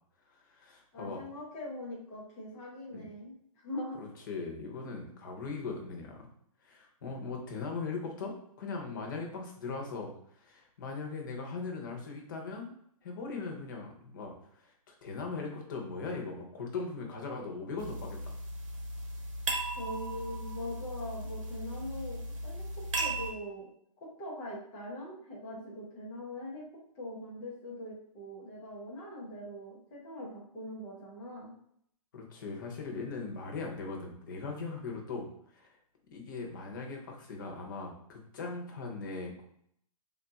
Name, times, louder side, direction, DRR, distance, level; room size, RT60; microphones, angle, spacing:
voice 1, 0.3-1.2 2.9-3.1 4.0-6.3 6.6-12.7 13.0-14.7 15.0-18.4 32.1-35.8 36.1-39.4, left 4 dB, 35° left, 1 dB, 0.7 m, -39 dB
voice 2, 0.9-4.0 19.8-23.7 24.0-26.6 26.9-31.5, left 1 dB, 5° left, -6 dB, 0.3 m, -42 dB
sound 1, 17.8-23.3, right 2 dB, 60° right, 0.9 m, -37 dB
3.5 x 2.4 x 3.9 m, 0.68 s
hypercardioid pair, 175°, 19 cm